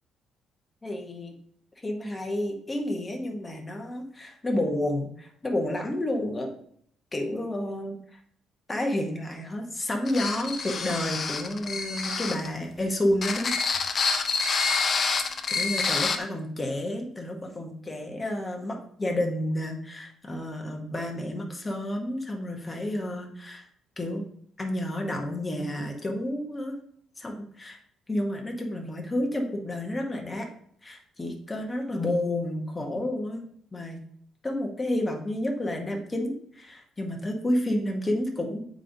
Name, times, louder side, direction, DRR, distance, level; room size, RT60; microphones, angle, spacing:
voice 1, 0.8-1.3 1.8-6.5 7.1-8.0 8.7-13.5 15.5-23.6 24.0-24.2 24.6-26.8 27.2-27.8 28.1-30.5 30.8-34.0 34.4-38.6, left 1 dB, 15° left, 2 dB, 0.9 m, -30 dB
sound 1, 10.1-12.5 13.1-16.2, left 4 dB, 30° left, 0.5 m, -27 dB
7.3 x 5.0 x 2.7 m, 0.65 s
cardioid pair, 170°, 0 cm